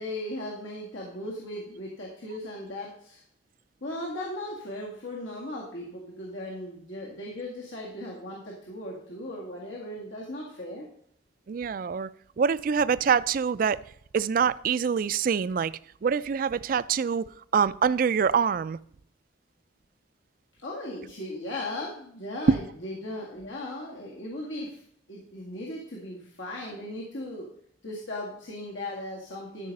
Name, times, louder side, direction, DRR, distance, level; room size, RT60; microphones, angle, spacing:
voice 1, 0.0-3.2 3.8-10.9 20.6-24.8 25.1-27.5 27.8-29.7, left 1 dB, 90° left, 2.0 m, -37 dB
voice 2, 11.5-12.1 12.4-13.8 14.1-15.7 16.0-17.3 17.5-18.8 22.5-22.6, right 6 dB, 50° right, 0.3 m, -25 dB
13.0 x 4.9 x 5.3 m
head